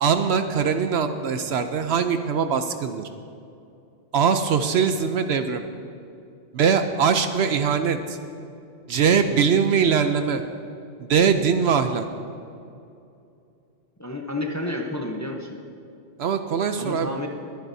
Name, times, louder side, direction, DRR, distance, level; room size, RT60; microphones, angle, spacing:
voice 1, 0.0-3.1 4.1-5.6 6.5-8.2 8.9-10.4 11.1-12.1 16.2-17.2, right 6 dB, 65° right, 8 dB, 0.8 m, -22 dB
voice 2, 14.0-15.6 16.8-17.3, left 1 dB, 15° left, 1 dB, 0.7 m, -30 dB
22.0 x 10.5 x 2.7 m, 2.6 s
omnidirectional pair, 1.3 m